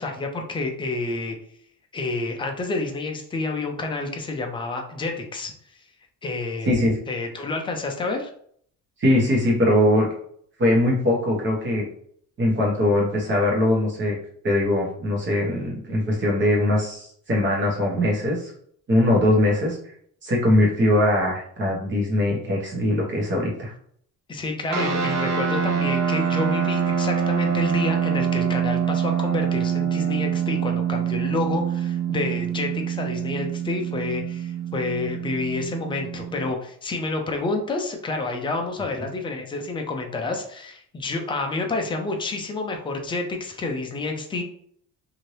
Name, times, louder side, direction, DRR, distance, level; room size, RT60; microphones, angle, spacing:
voice 1, 0.0-1.4 1.9-5.5 6.2-6.7 7.1-8.3 24.3-44.4, left 3 dB, 15° left, 3 dB, 0.3 m, -29 dB
voice 2, 6.7-7.0 9.0-10.1 10.6-11.9 12.4-14.2 14.4-18.5 18.9-19.8 20.2-23.7, left 1 dB, 35° right, -2 dB, 1.1 m, -21 dB
sound 1, 24.7-36.5, right 8 dB, 70° right, 0.7 m, -25 dB
2.7 x 2.6 x 3.2 m, 0.63 s
cardioid pair, 170°, 33 cm